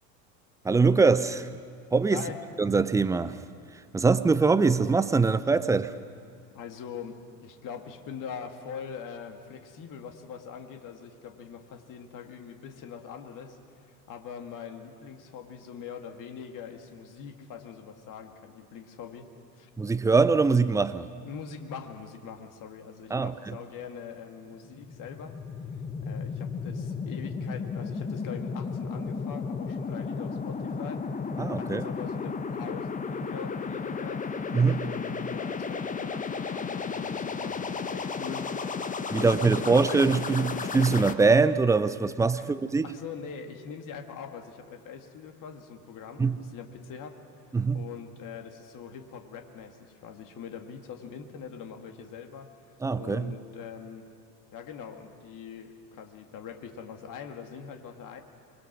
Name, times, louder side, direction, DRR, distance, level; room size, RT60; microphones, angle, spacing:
voice 1, 0.6-1.6 1.9-2.2 2.6-3.4 3.9-5.9 19.8-21.1 23.1-23.6 31.4-31.9 34.5-34.9 39.1-42.9 46.2-46.4 47.5-47.8 52.8-53.3, right 4 dB, 5° right, 0.5 m, -23 dB
voice 2, 2.1-2.4 6.3-19.7 21.2-25.4 26.0-31.1 31.6-34.2 34.8-38.5 39.1-40.0 42.3-42.5 42.8-47.2 47.4-54.1 54.5-58.2, left 7 dB, 40° left, 2.3 m, -43 dB
sound 1, 24.6-41.1, left 5 dB, 15° left, 1.1 m, -33 dB
25.0 x 22.0 x 6.2 m
figure-of-eight pair, 75°, 48 cm